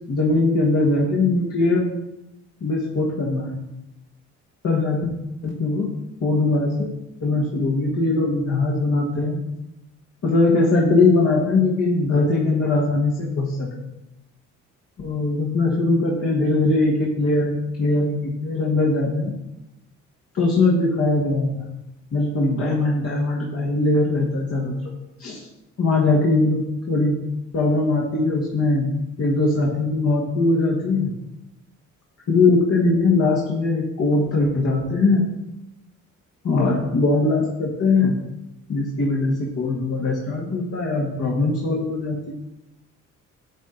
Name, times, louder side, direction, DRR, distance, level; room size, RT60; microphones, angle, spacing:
voice 1, 0.0-1.9 2.6-3.6 4.6-5.1 5.4-5.9 6.2-6.9 7.2-9.4 10.2-13.9 15.0-19.4 20.3-21.5 22.1-24.7 25.2-25.4 25.8-27.2 27.5-28.9 29.2-31.1 32.3-35.2 36.4-38.2 38.7-42.2, left 3 dB, 50° left, -3 dB, 1.5 m, -21 dB
9.2 x 4.3 x 3.9 m, 0.90 s
cardioid pair, 90°, 30 cm